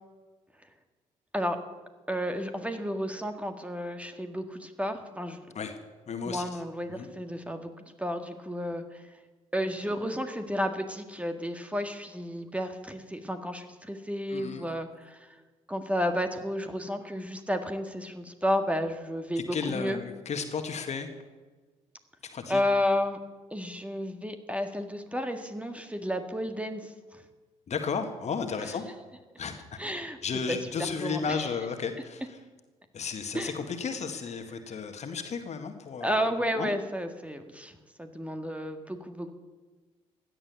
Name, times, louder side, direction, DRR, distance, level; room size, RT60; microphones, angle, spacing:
voice 1, 2.1-5.4 6.2-7.7 8.0-9.0 9.5-15.3 15.7-20.0 22.5-23.2 23.5-27.2 29.8-30.2 30.5-30.6 31.0-31.5 33.3-33.5 36.0-39.3, equal, 10° right, 7 dB, 1.7 m, -32 dB
voice 2, 6.1-6.6 6.9-7.1 14.3-14.7 19.4-21.1 22.3-22.6 27.7-28.9 29.4-29.6 30.2-32.2 32.9-36.2 36.6-36.7, left 5 dB, 45° left, 6 dB, 1.9 m, -33 dB
16.0 x 11.0 x 7.0 m, 1.3 s
figure-of-eight pair, 45°, 16 cm